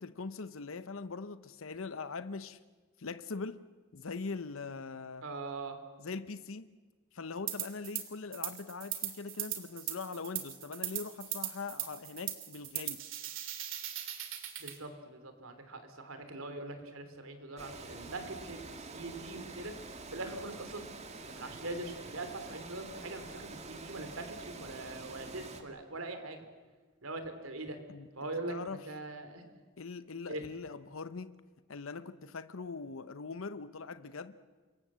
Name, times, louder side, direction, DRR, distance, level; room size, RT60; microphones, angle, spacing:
voice 1, 0.0-2.6 3.0-3.6 3.9-5.3 6.0-6.7 7.1-13.0 27.9-28.1 28.5-28.9 29.8-31.4 31.7-34.3, left 4 dB, 75° left, 0.8 m, -41 dB
voice 2, 5.2-5.8 14.6-20.8 21.3-26.4 27.0-27.8 28.1-29.4 30.3-30.5, right 2 dB, 85° right, 3.4 m, -42 dB
sound 1, 7.5-8.0 8.3-14.8, right 12 dB, 65° right, 2.9 m, -39 dB
Water, 17.6-25.6, right 3 dB, 35° right, 2.2 m, -47 dB
27.0 x 22.5 x 7.6 m
head